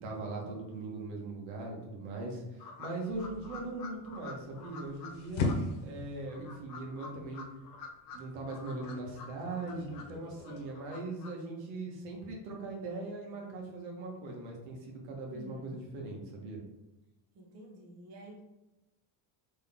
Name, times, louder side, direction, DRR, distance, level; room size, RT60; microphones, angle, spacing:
voice 1, 0.0-5.5 5.8-7.4 8.1-16.6, right 2 dB, 80° right, -1 dB, 1.4 m, -40 dB
sound 1, 2.6-5.1 5.4-5.6 6.3-8.2 8.4-10.1 10.4-11.3, left 4 dB, 45° left, 0.8 m, -47 dB
sound 2, 3.1-10.6, left 3 dB, 75° left, 1.0 m, -40 dB
voice 2, 3.2-3.6 15.3-15.8 17.3-18.4, right 1 dB, 35° right, 0 dB, 0.8 m, -50 dB
3.9 x 3.3 x 3.5 m, 1.0 s
cardioid pair, 145°, 47 cm